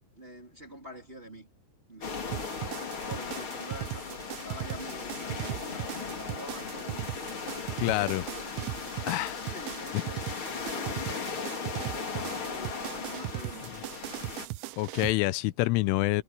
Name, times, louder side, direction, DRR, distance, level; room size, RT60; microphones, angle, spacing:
voice 1, 0.1-1.5 1.9-2.5 3.0-7.4 7.9-8.5 9.5-10.3 10.7-11.5 11.7-13.9, equal, 15° right, 2.8 m, -46 dB
sound 1, 2.0-14.5, left 5 dB, 35° left, 2.5 m, -37 dB
sound 2, 2.3-15.1, right 19 dB, 80° right, 2.9 m, -38 dB
voice 2, 7.8-8.2 9.1-9.4 14.8-16.2, left 19 dB, 90° left, 3.3 m, -27 dB
omnidirectional pair, 5.6 m